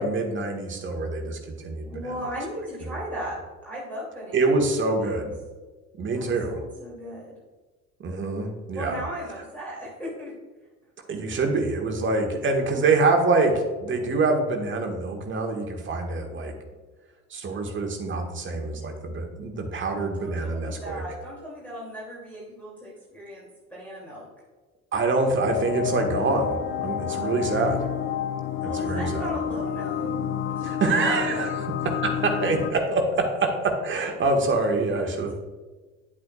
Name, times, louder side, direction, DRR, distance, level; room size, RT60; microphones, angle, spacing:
voice 1, 0.0-2.1 4.3-5.3 6.0-6.6 8.0-9.0 11.1-16.5 17.3-21.0 24.9-27.9 28.6-29.3 30.6-35.3, right 3 dB, 25° right, 3 dB, 1.5 m, -25 dB
voice 2, 1.9-4.5 5.0-5.1 6.1-7.4 8.7-10.3 19.7-24.3 27.1-27.3 28.6-30.1 30.5-30.7 31.0-31.5, equal, 5° left, -6 dB, 2.7 m, -37 dB
sound 1, 25.4-32.7, left 8 dB, 30° left, 0.5 m, -29 dB
10.0 x 8.3 x 2.4 m, 1.3 s
figure-of-eight pair, 65°, 44 cm